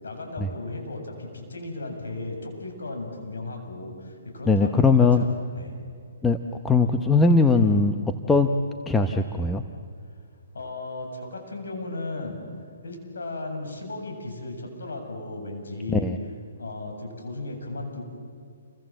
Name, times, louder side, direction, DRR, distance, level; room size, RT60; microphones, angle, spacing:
voice 1, 0.0-5.8 10.5-12.4 12.8-16.1 16.6-18.0, left 2 dB, 90° left, 3 dB, 7.8 m, -35 dB
voice 2, 4.5-5.3 6.2-6.4 6.6-7.9 8.3-8.5 8.9-9.6 15.9-16.2, left 3 dB, 5° left, 6 dB, 0.9 m, -20 dB
29.5 x 25.0 x 7.8 m, 2.3 s
hypercardioid pair, 155°, 0 cm